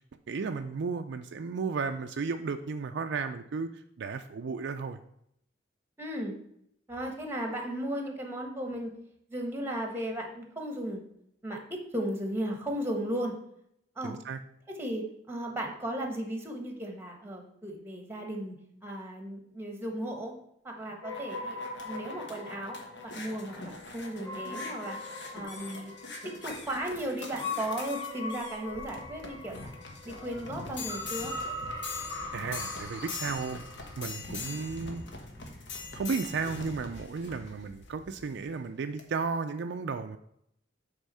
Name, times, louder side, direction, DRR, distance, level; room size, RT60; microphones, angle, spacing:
voice 1, 0.3-5.0 14.0-14.4 32.3-33.6 34.0-35.0 35.9-40.2, right 5 dB, 65° right, 7 dB, 0.4 m, -34 dB
voice 2, 6.0-6.4 6.9-8.9 9.3-11.0 11.4-13.4 13.9-14.2 14.7-20.3 20.6-22.8 23.0-25.0 25.3-25.9 26.4-29.7 30.0-31.3 34.4-34.6, right 1 dB, 10° right, 2 dB, 1.3 m, -35 dB
sound 1, 20.8-38.4 39.0-39.1, left 3 dB, 65° left, 1.2 m, -43 dB
sound 2, 21.0-34.1, left 2 dB, 20° left, 2.6 m, -41 dB
8.1 x 3.6 x 5.5 m, 0.73 s
head